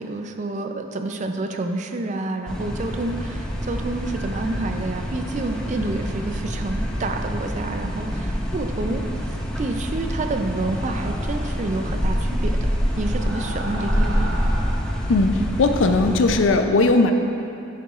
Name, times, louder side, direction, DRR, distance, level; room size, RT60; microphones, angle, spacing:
voice 1, 0.0-9.0 9.6-14.3, right 2 dB, 40° right, 5 dB, 0.4 m, -29 dB
sound 1, 2.5-16.5, equal, 5° left, 0.6 m, -26 dB
sound 2, 10.4-11.6 12.9-15.0, right 1 dB, 55° right, 1.0 m, -36 dB
voice 2, 15.1-17.1, left 3 dB, 70° left, 6 dB, 0.5 m, -18 dB
10.0 x 7.1 x 2.4 m, 2.6 s
head